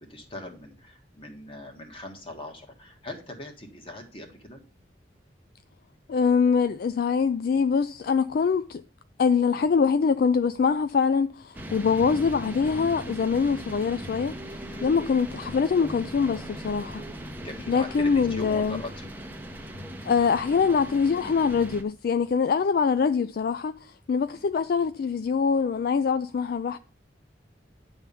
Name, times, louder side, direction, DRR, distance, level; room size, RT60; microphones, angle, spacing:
voice 1, 0.0-4.6 14.7-14.9 17.4-19.1 24.3-24.4, left 1 dB, 30° left, 1.7 m, -41 dB
voice 2, 6.1-8.8 9.2-14.4 14.8-17.0 17.7-18.8 20.0-26.8, left 5 dB, 55° left, 0.3 m, -24 dB
sound 1, 11.5-21.8, equal, 10° right, 0.8 m, -39 dB
10.5 x 3.5 x 6.9 m
head